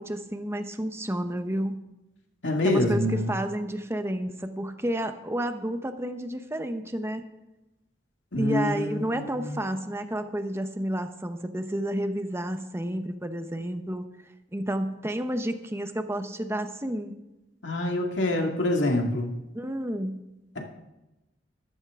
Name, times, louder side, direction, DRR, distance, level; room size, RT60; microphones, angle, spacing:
voice 1, 0.0-1.9 2.6-7.2 8.4-14.1 14.5-17.1 19.5-20.2, right 1 dB, 15° right, 8 dB, 0.9 m, -31 dB
voice 2, 2.4-3.3 8.3-9.6 17.6-19.3, left 1 dB, 85° left, 2 dB, 2.2 m, -26 dB
13.5 x 13.0 x 3.7 m, 0.97 s
head